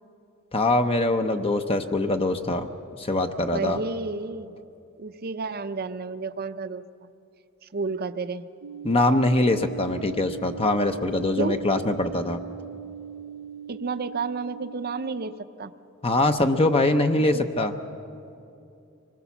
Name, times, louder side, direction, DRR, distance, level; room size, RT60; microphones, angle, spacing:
voice 1, 0.5-2.7 3.0-3.8 8.8-12.4 16.0-17.7, left 2 dB, 25° left, 6 dB, 0.7 m, -23 dB
voice 2, 3.4-4.6 5.0-6.8 7.7-8.5 11.4-11.6 13.7-15.3 15.6-15.7 17.2-17.5, right 4 dB, 45° right, 11 dB, 0.7 m, -31 dB
sound 1, 8.6-15.3, right 8 dB, 85° right, 0.6 m, -40 dB
25.5 x 20.0 x 7.1 m, 2.7 s
head